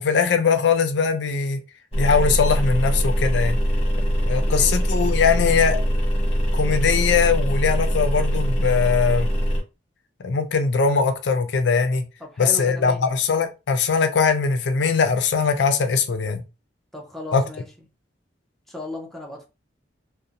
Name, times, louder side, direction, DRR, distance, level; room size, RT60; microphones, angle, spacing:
voice 1, 0.0-1.6 1.9-3.6 4.2-5.8 6.5-9.3 10.2-12.0 12.4-16.4 17.3-17.4, left 5 dB, 65° left, 0.4 m, -21 dB
sound 1, 1.9-9.6, equal, 30° left, 0.9 m, -22 dB
voice 2, 4.3-4.8 12.2-13.0 16.9-17.7 18.7-19.5, left 1 dB, ahead, 0.5 m, -36 dB
2.5 x 2.0 x 2.8 m
head